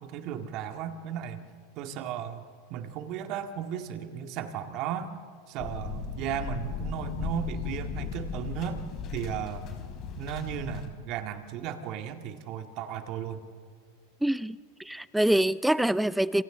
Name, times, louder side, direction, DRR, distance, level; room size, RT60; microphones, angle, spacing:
voice 1, 0.0-1.4 1.8-5.1 5.5-9.7 10.2-13.4, right 8 dB, 50° right, 2.0 m, -35 dB
sound 1, 5.6-10.9, left 5 dB, 45° left, 4.7 m, -36 dB
voice 2, 14.2-14.6 14.9-16.4, right 1 dB, 5° right, 0.6 m, -25 dB
28.0 x 28.0 x 3.9 m
hypercardioid pair, 100°, 0 cm